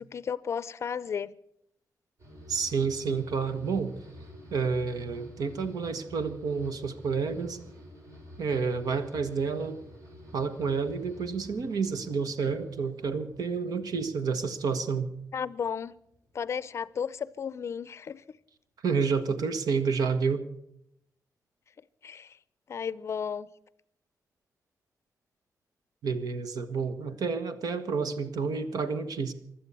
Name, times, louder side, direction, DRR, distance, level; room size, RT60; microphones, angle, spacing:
voice 1, 0.0-1.3 15.3-16.0 16.3-18.2 22.0-22.4 22.7-23.5, left 7 dB, 45° left, 0.5 m, -34 dB
sound 1, 2.2-15.5 15.8-16.5, equal, 55° right, 5.4 m, -50 dB
voice 2, 2.5-3.9 4.5-7.6 8.4-9.8 10.3-15.1 18.8-20.4 26.0-29.3, right 5 dB, 75° right, 1.4 m, -29 dB
16.0 x 12.0 x 6.9 m
wide cardioid pair, 175°, 6 cm